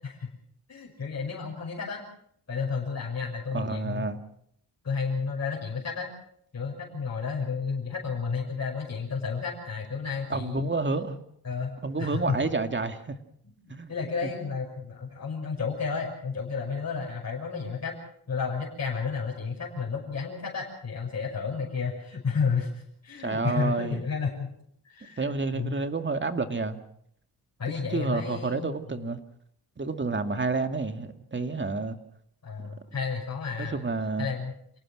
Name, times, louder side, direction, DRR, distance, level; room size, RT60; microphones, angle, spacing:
voice 1, 0.7-2.0 2.5-4.1 4.8-6.1 6.5-10.7 11.4-12.4 13.4-17.9 18.3-24.5 24.8-25.8 27.6-28.8 32.4-33.8 34.2-34.5, left 5 dB, 45° left, -3 dB, 6.1 m, -32 dB
voice 2, 3.5-4.2 10.3-11.2 11.8-13.2 13.7-13.9 14.2-14.3 23.2-24.0 25.2-26.8 27.9-29.2 29.8-32.0 32.6-32.7 33.6-34.3, right 3 dB, 30° right, 8 dB, 2.2 m, -29 dB
28.0 x 18.5 x 6.3 m, 0.67 s
cardioid pair, 90°, 38 cm